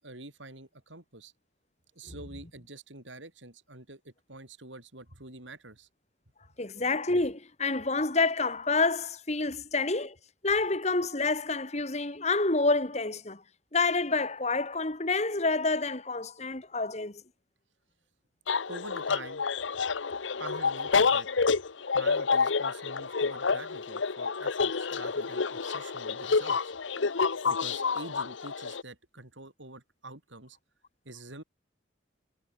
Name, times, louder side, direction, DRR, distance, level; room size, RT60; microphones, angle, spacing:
voice 1, 0.0-1.3 1.9-5.9 18.7-19.4 20.4-21.6 21.9-26.7 27.4-30.6 31.0-31.4, right 2 dB, 85° right, 7.8 m, -46 dB
voice 2, 6.6-10.2 10.4-13.4 13.7-17.2, left 3 dB, 35° left, 2.0 m, -28 dB
sound 1, 18.5-28.8, left 5 dB, 90° left, 0.9 m, -28 dB
head